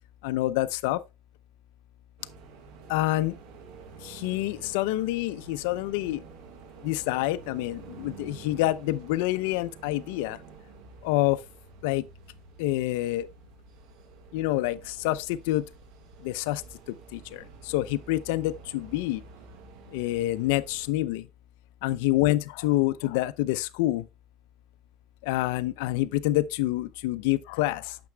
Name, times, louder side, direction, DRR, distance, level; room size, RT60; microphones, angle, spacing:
voice 1, 0.2-1.0 2.9-3.4 4.0-6.2 6.8-10.4 11.0-11.4 11.8-12.1 12.6-13.3 14.3-15.7 16.2-19.2 19.9-21.3 21.8-24.1 25.2-28.0, left 16 dB, 85° left, 0.5 m, -27 dB
sound 1, 2.2-20.9, right 6 dB, 70° right, 1.5 m, -49 dB
9.2 x 6.8 x 2.2 m
cardioid pair, 130°, 0 cm